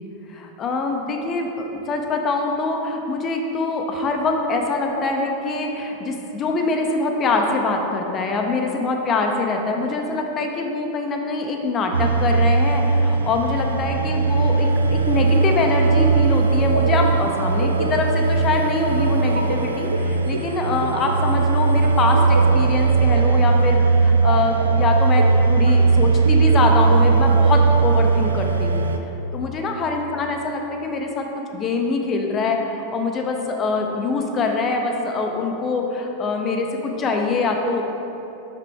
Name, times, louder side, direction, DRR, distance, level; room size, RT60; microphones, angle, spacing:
voice 1, 0.3-28.8 29.3-37.8, left 3 dB, 25° left, 3 dB, 0.6 m, -24 dB
sound 1, 11.9-29.0, right 4 dB, 75° right, 0.4 m, -18 dB
6.0 x 5.7 x 3.4 m, 3.0 s
figure-of-eight pair, 90°, 0 cm